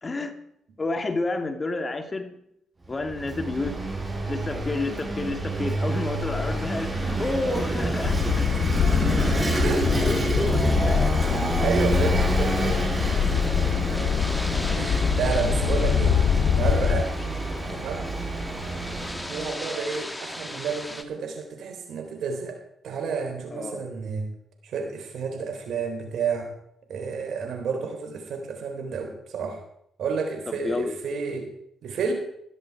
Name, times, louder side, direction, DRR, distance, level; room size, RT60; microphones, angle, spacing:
voice 1, 0.0-0.3 0.8-2.3 2.9-3.8 4.3-8.5 10.0-11.1 23.5-23.9 30.5-30.9, left 2 dB, 35° left, 7 dB, 2.4 m, -30 dB
Vehicle / Engine, 2.9-19.5, right 2 dB, 25° right, 7.2 m, -28 dB
sound 1, 8.0-17.0, left 8 dB, 65° left, 0.6 m, -24 dB
sound 2, 11.3-21.0, left 1 dB, 15° left, 2.2 m, -39 dB
voice 2, 11.3-13.2 14.7-16.2 16.6-17.1 17.7-18.1 19.3-22.6 22.8-24.3 24.6-26.5 26.9-29.6 30.0-31.5 31.8-32.1, right 5 dB, 65° right, 4 dB, 3.8 m, -30 dB
16.0 x 14.0 x 4.8 m, 0.74 s
hypercardioid pair, 45°, 0 cm